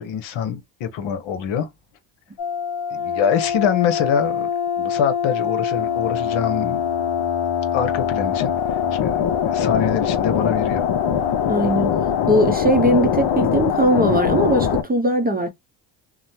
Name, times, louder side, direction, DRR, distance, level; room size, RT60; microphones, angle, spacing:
voice 1, 0.0-1.7 2.9-4.5 4.8-6.8 7.7-10.9, left 8 dB, 65° left, 0.9 m, -24 dB
sound 1, 2.4-14.8, left 8 dB, 50° left, 0.6 m, -22 dB
voice 2, 11.5-11.9 12.3-15.5, right 1 dB, 20° right, 0.6 m, -19 dB
3.1 x 2.1 x 2.6 m
supercardioid pair, 85°, 50 cm